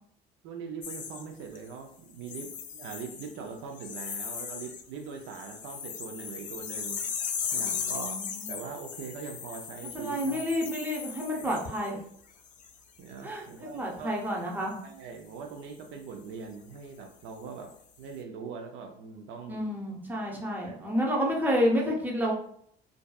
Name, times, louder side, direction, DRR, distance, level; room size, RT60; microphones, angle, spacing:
voice 1, 0.4-7.0 7.5-8.2 8.5-10.5 11.3-12.0 13.0-14.2 14.8-19.6 20.7-20.9, right 5 dB, 85° right, 4 dB, 0.4 m, -42 dB
sound 1, 0.8-1.7 2.2-3.4 3.8-4.8 5.1-11.9 12.4-12.7, left 7 dB, 40° left, 0.4 m, -37 dB
voice 2, 7.6-8.6 9.9-12.0 13.2-13.4 13.7-14.7 19.5-22.3, equal, 10° right, -2 dB, 0.7 m, -30 dB
2.5 x 2.3 x 2.2 m, 0.65 s
cardioid pair, 90°, 20 cm